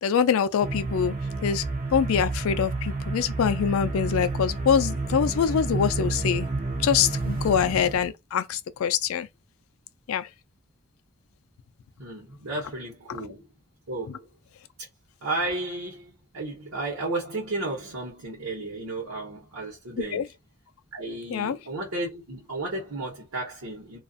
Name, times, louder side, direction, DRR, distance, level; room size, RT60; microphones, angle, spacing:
voice 1, 0.0-1.1 1.4-1.6 1.9-6.5 6.8-9.3 10.1-10.3 13.1-13.2 20.1-20.2 21.3-21.6, left 7 dB, 75° left, 0.3 m, -24 dB
sound 1, 0.6-8.1, right 3 dB, 40° right, 0.7 m, -30 dB
voice 2, 12.0-13.4 13.9-14.2 14.8-14.9 15.2-20.3 20.9-24.0, right 2 dB, 75° right, 0.9 m, -33 dB
2.5 x 2.4 x 2.3 m
head